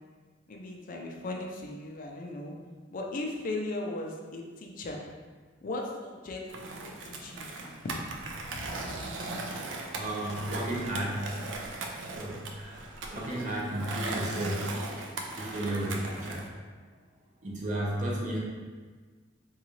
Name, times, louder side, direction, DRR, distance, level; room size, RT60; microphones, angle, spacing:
voice 1, 0.5-2.6 2.9-5.1 5.6-9.1, left 2 dB, 45° left, 0 dB, 0.4 m, -38 dB
Skateboard, 6.5-16.5, right 2 dB, 85° right, 0.4 m, -38 dB
voice 2, 9.9-11.2 12.1-12.8 13.1-14.7 15.3-16.4 17.4-18.4, right 1 dB, 40° right, -4 dB, 0.7 m, -33 dB
3.8 x 2.3 x 3.0 m, 1.5 s
head